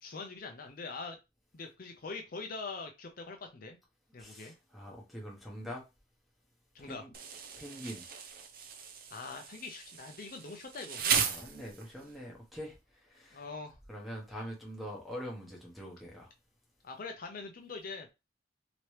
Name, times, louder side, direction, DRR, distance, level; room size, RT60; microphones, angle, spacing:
voice 1, 0.0-1.2 1.5-3.8 4.1-4.5 6.7-7.0 9.1-11.1 13.3-13.8 16.8-18.1, left 4 dB, 50° left, 0.5 m, -43 dB
voice 2, 4.2-5.8 6.8-7.1 7.6-8.0 11.1-12.8 13.1-13.4 13.9-16.3, equal, ahead, 1.0 m, -44 dB
Insect, 7.1-12.1, right 6 dB, 50° right, 0.5 m, -36 dB
3.0 x 2.9 x 3.2 m
head